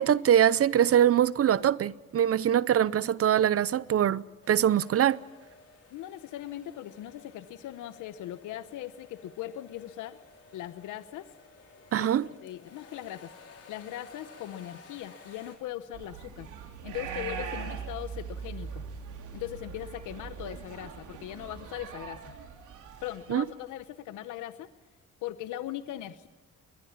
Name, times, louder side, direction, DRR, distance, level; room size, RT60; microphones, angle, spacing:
voice 1, 0.0-5.2 11.9-12.2 23.3-23.4, right 10 dB, 50° right, 0.6 m, -23 dB
sound 1, 4.4-15.6, left 4 dB, 50° left, 5.1 m, -54 dB
voice 2, 5.9-10.2 10.5-11.3 12.0-12.2 12.4-13.3 13.7-16.5 16.8-18.9 19.3-22.3 23.0-24.7 25.2-26.3, left 13 dB, 90° left, 0.9 m, -39 dB
sound 2, 15.9-23.6, right 6 dB, 80° right, 3.6 m, -41 dB
21.5 x 21.0 x 7.3 m
cardioid pair, 90°, 30 cm